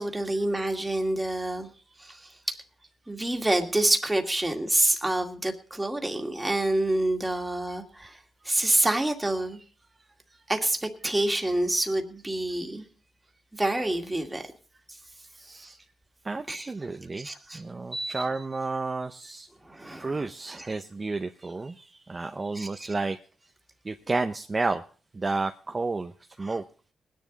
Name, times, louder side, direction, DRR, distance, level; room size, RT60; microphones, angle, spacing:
voice 1, 0.0-1.7 2.0-2.6 3.1-8.2 8.4-9.6 10.5-12.9 13.5-14.5 14.9-15.0 16.5-16.9 17.2-17.6 17.9-18.3 19.6-20.3 20.6-20.7 22.5-22.9 26.4-26.6, right 1 dB, 10° right, 3 dB, 2.2 m, -27 dB
voice 2, 15.3-15.8 16.2-17.3 17.5-19.5 20.0-23.2 23.8-24.8 25.1-26.1 26.4-26.6, right 3 dB, 30° right, 6 dB, 0.7 m, -31 dB
20.0 x 10.5 x 4.1 m, 0.42 s
cardioid pair, 90°, 0 cm